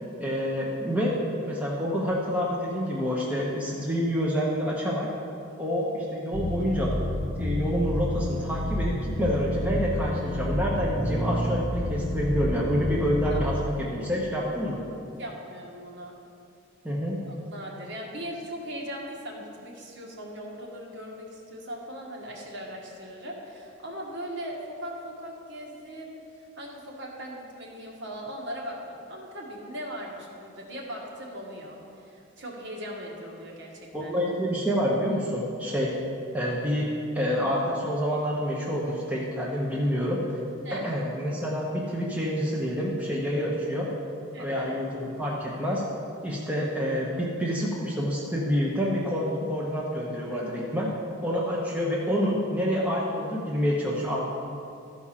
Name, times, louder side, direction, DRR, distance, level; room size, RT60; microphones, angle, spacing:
voice 1, 0.2-5.1 5.6-6.9 7.4-14.8 16.8-17.2 33.9-35.9 36.3-40.2 40.7-43.9 44.4-45.8 46.2-50.9 51.2-54.3, equal, 5° right, -4 dB, 0.9 m, -27 dB
sound 1, 6.3-13.3, left 1 dB, 70° right, 1.9 m, -29 dB
voice 2, 15.2-16.1 17.2-34.2 40.6-40.9 44.3-44.7, equal, 55° right, -1 dB, 1.5 m, -39 dB
12.5 x 4.8 x 5.7 m, 2.5 s
head